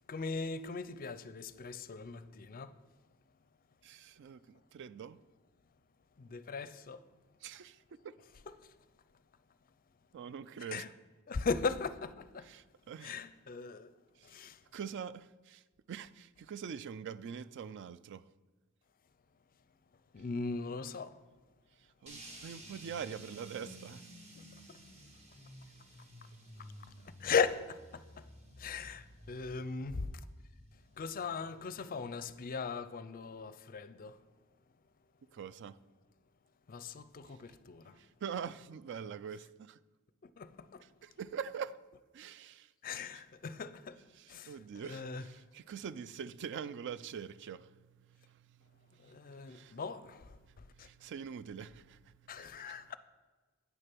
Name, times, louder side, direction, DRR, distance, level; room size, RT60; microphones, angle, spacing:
voice 1, 0.1-2.7 6.2-7.0 8.5-8.7 10.7-10.9 11.3-12.5 13.0-13.9 14.2-14.6 20.1-21.2 24.7-24.8 26.6-26.7 27.0-28.3 28.6-30.2 31.0-34.2 36.7-38.0 40.2-40.9 42.8-44.0 44.3-44.6 44.8-45.2 49.0-50.9 52.3-53.0, left 5 dB, 40° left, 0.5 m, -38 dB
voice 2, 3.8-5.2 7.4-8.2 10.1-10.8 12.4-13.2 14.2-14.4 14.7-18.2 21.8-24.1 35.3-35.8 37.3-37.4 38.0-39.8 40.8-41.8 42.1-43.1 44.1-49.8 50.4-53.0, right 7 dB, 55° right, 0.3 m, -45 dB
sound 1, 22.1-32.3, right 1 dB, 30° right, 1.3 m, -54 dB
9.2 x 6.5 x 6.0 m
head